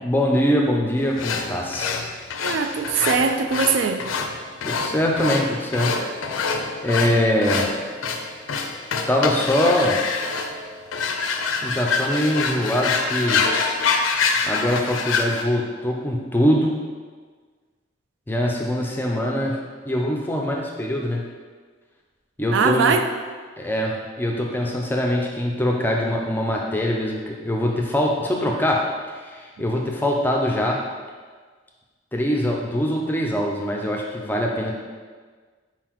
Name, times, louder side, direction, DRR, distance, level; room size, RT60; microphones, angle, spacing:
voice 1, 0.0-2.0 4.6-6.0 6.3-7.9 9.1-10.0 11.6-13.4 14.5-16.7 18.3-19.6 19.9-21.3 22.4-23.0 23.6-30.8 32.1-34.8, left 1 dB, 10° left, -1 dB, 0.4 m, -23 dB
sound 1, 1.2-15.4, left 4 dB, 85° left, 0.4 m, -26 dB
voice 2, 2.4-4.0 22.5-23.0, right 5 dB, 70° right, 7 dB, 0.3 m, -21 dB
4.5 x 3.8 x 3.0 m, 1.5 s
head